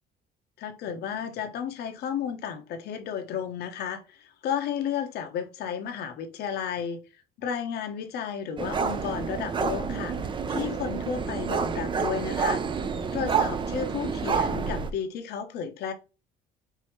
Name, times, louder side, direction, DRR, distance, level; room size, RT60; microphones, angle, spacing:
voice 1, 0.6-7.0 7.4-12.6 13.1-15.9, left 7 dB, 70° left, 0.9 m, -33 dB
sound 1, 8.6-14.9, right 6 dB, 30° right, 0.5 m, -29 dB
4.8 x 2.7 x 3.1 m
cardioid pair, 110°, 17 cm